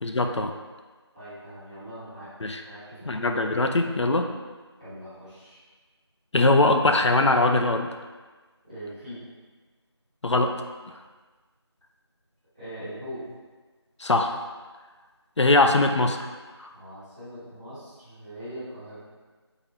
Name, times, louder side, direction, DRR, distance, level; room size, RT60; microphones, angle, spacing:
voice 1, 0.0-0.5 2.4-2.6 3.1-4.3 6.3-7.9 10.2-10.5 14.0-14.4 15.4-16.3 16.6-16.7, left 2 dB, 80° left, 5 dB, 0.4 m, -21 dB
voice 2, 1.1-2.3 2.6-3.1 4.8-5.6 8.6-9.2 12.5-13.3 16.7-19.0, equal, 20° right, -17 dB, 1.5 m, -41 dB
3.9 x 2.9 x 2.8 m, 1.3 s
figure-of-eight pair, 175°, 15 cm